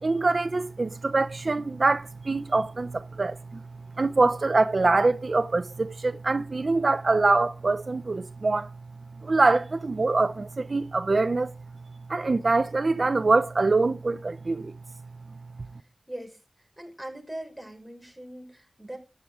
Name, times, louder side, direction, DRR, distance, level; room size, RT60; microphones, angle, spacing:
voice 1, 0.0-3.6 4.0-8.7 9.2-11.5 12.1-14.7, right 3 dB, 60° right, 0.6 m, -24 dB
voice 2, 16.1-19.0, right 1 dB, 5° right, 5.6 m, -41 dB
13.0 x 9.5 x 3.7 m
wide cardioid pair, 55°, 0 cm